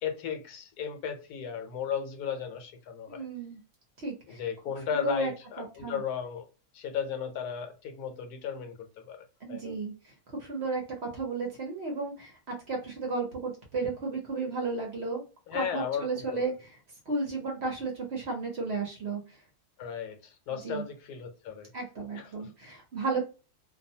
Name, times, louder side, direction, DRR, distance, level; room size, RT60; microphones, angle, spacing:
voice 1, 0.0-3.2 4.3-6.5 6.7-9.2 9.5-9.7 15.5-16.5 19.8-21.7 22.2-22.5, left 7 dB, 80° left, 1.1 m, -35 dB
voice 2, 3.1-3.6 4.0-4.4 4.9-5.3 5.6-6.0 9.4-15.2 15.5-16.8 17.1-19.2 20.5-20.9 21.7-23.2, right 3 dB, 55° right, 0.8 m, -33 dB
2.6 x 2.2 x 2.7 m
omnidirectional pair, 1.7 m